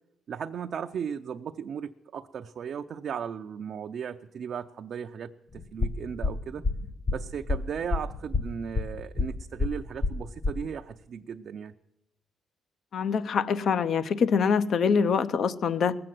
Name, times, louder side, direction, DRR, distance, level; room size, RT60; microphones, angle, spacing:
voice 1, 0.3-6.6 7.1-11.7, right 7 dB, 60° right, 5 dB, 0.5 m, -36 dB
sound 1, 5.5-10.7, left 3 dB, 40° left, 1.5 m, -28 dB
voice 2, 12.9-16.0, left 6 dB, 60° left, 14 dB, 0.7 m, -24 dB
19.5 x 7.8 x 7.6 m, 0.87 s
cardioid pair, 90°, 0 cm